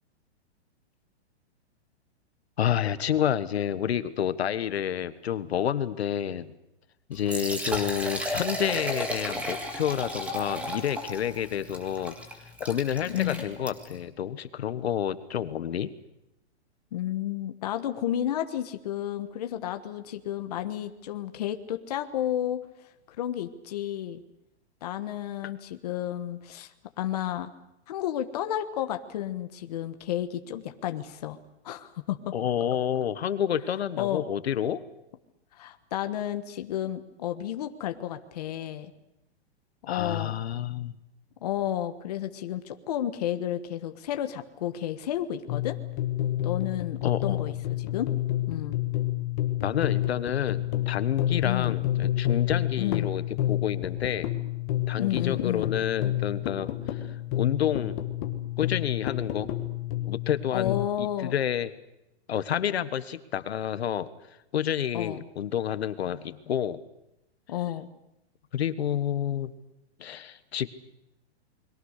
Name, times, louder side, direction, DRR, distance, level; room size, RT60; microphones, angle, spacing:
voice 1, 2.6-6.5 7.1-12.1 12.6-15.9 32.3-34.8 39.9-40.9 47.0-47.4 49.6-54.3 54.9-57.0 57.3-58.0 58.6-59.5 60.0-61.7 62.3-64.1 64.5-66.8 68.5-69.5 70.0-70.7, left 9 dB, 70° left, 13 dB, 1.5 m, -29 dB
Liquid, 7.1-14.0, equal, 5° right, 1.8 m, -34 dB
voice 2, 13.1-13.4 16.9-22.7 23.1-24.2 24.8-27.5 27.9-31.4 31.6-32.3 34.0-34.2 35.6-38.9 39.9-40.4 41.4-45.8 46.4-48.1 48.5-48.8 51.4-51.8 52.8-53.1 55.0-55.8 60.5-61.3 64.9-65.2 67.5-67.9, left 11 dB, 35° left, 8 dB, 1.3 m, -32 dB
sound 1, 45.5-60.9, left 13 dB, 20° left, 1.4 m, -29 dB
29.0 x 22.0 x 6.6 m, 0.86 s
hypercardioid pair, 180°, 33 cm